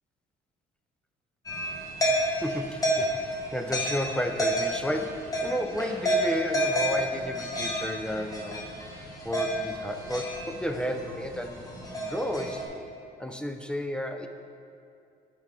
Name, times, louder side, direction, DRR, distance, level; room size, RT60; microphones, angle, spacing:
sound 1, 1.5-12.6, equal, 20° left, 1.3 m, -30 dB
voice 1, 2.4-8.7 9.2-11.7 11.9-12.9 13.2-14.3, equal, 5° left, 5 dB, 0.4 m, -32 dB
9.3 x 3.8 x 4.9 m, 2.4 s
cardioid pair, 110°, 17 cm